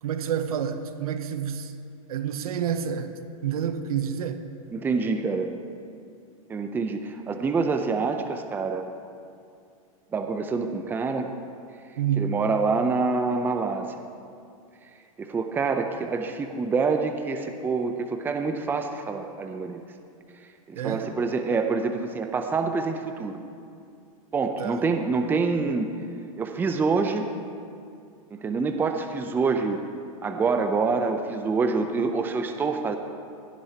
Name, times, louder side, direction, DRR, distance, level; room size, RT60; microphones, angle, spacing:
voice 1, 0.0-1.7 2.1-4.5 12.0-12.4 20.7-21.1 24.6-24.8, right 8 dB, 90° right, 0.9 m, -29 dB
voice 2, 4.7-5.5 6.5-8.8 10.1-11.3 12.2-14.0 15.2-19.8 20.7-23.4 24.3-25.9 26.4-27.3 28.3-29.8 30.2-33.0, right 4 dB, 10° right, 0.5 m, -26 dB
16.5 x 11.0 x 2.9 m
supercardioid pair, 145°, 18 cm